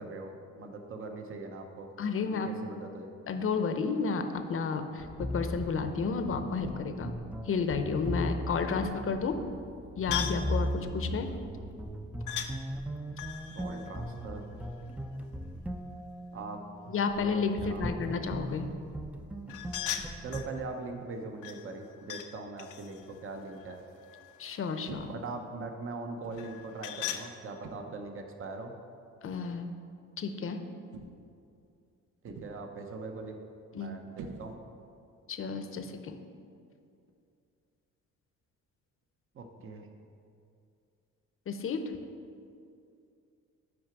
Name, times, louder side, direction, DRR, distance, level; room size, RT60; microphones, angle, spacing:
voice 1, 0.0-1.9 2.2-3.1 13.5-14.4 16.3-17.8 20.2-23.8 25.0-28.7 32.2-33.4 33.7-34.6 39.3-39.9, right 3 dB, 45° right, 5 dB, 0.8 m, -41 dB
voice 2, 2.0-2.5 3.3-7.1 7.5-9.4 10.0-11.3 16.9-18.7 24.4-25.1 29.2-29.7 30.2-30.6 33.7-34.0 35.3-36.2 41.5-41.9, left 5 dB, 45° left, 7 dB, 0.7 m, -32 dB
sound 1, 5.0-20.5, equal, 5° right, 0.3 m, -38 dB
sound 2, 10.1-10.5 12.3-12.5 13.1-15.0 19.5-20.5 21.4-22.3 22.6-24.5 26.3-27.3, left 10 dB, 85° left, 0.6 m, -39 dB
sound 3, 24.9-25.4 26.2-26.6 27.6-28.1 29.2-29.4 30.9-31.4 32.3-32.8 34.2-34.9, right 4 dB, 85° right, 0.6 m, -46 dB
6.2 x 4.9 x 5.9 m, 2.5 s
cardioid pair, 90°, 30 cm